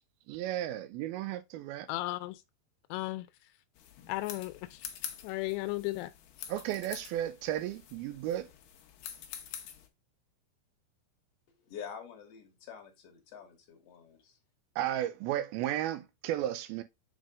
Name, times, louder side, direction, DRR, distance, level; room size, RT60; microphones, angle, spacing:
voice 1, 0.3-1.9 6.5-8.5 14.8-16.8, right 12 dB, 85° right, 2.3 m, -34 dB
voice 2, 1.9-2.4 2.9-3.5 4.1-4.8 5.2-6.1, left 19 dB, 90° left, 2.7 m, -35 dB
sound 1, 3.8-9.9, left 9 dB, 70° left, 2.2 m, -46 dB
voice 3, 11.6-14.4, left 7 dB, 55° left, 2.0 m, -47 dB
7.4 x 3.6 x 3.6 m
omnidirectional pair, 4.7 m